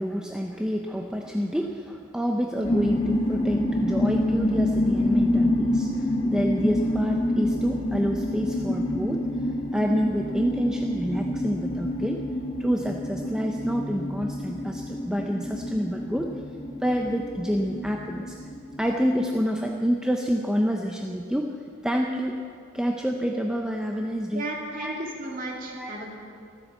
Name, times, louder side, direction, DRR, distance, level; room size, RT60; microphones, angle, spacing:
voice 1, 0.0-9.3 9.7-12.2 12.6-16.3 16.8-18.4 18.8-21.5 21.8-22.4 22.7-24.4 24.8-25.0 25.7-25.9, equal, 5° right, 1 dB, 0.6 m, -28 dB
sound 1, 2.6-19.2, left 1 dB, 25° left, 1.1 m, -27 dB
voice 2, 24.3-26.1, right 1 dB, 40° right, 0 dB, 2.6 m, -34 dB
15.0 x 13.0 x 7.3 m, 2.4 s
head